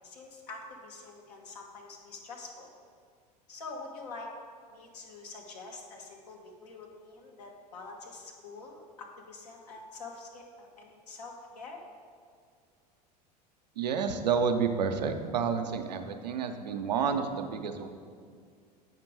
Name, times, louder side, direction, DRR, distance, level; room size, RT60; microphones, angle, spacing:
voice 1, 0.0-2.7 3.5-4.3 4.7-11.8, left 3 dB, 75° left, 0 dB, 1.4 m, -46 dB
voice 2, 13.8-17.9, right 6 dB, 85° right, 6 dB, 0.7 m, -30 dB
8.1 x 5.2 x 4.7 m, 2.1 s
hypercardioid pair, 85°, 21 cm